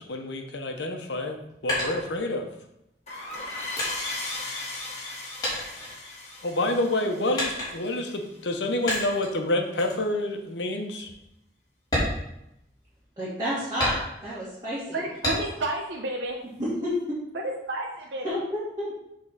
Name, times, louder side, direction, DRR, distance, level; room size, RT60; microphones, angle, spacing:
voice 1, 0.0-2.5 6.4-11.1, left 1 dB, 80° left, 4 dB, 0.9 m, -28 dB
sound 1, 1.1-2.7 3.3-5.1 5.4-6.6 7.4-8.0 8.9-9.4 9.8-10.0 10.5-10.6 11.0-11.2 11.8-13.0 13.8-14.4 15.2-15.8 16.2-17.0, left 1 dB, 25° left, 2.8 m, -31 dB
sound 2, 3.1-8.4, left 2 dB, 40° left, 1.7 m, -37 dB
voice 2, 13.2-15.0 16.6-17.2 18.2-19.0, equal, 25° right, -10 dB, 2.2 m, -30 dB
voice 3, 14.9-16.4 17.4-18.4, right 2 dB, 85° right, 0 dB, 0.9 m, -31 dB
7.2 x 3.8 x 5.6 m, 0.82 s
head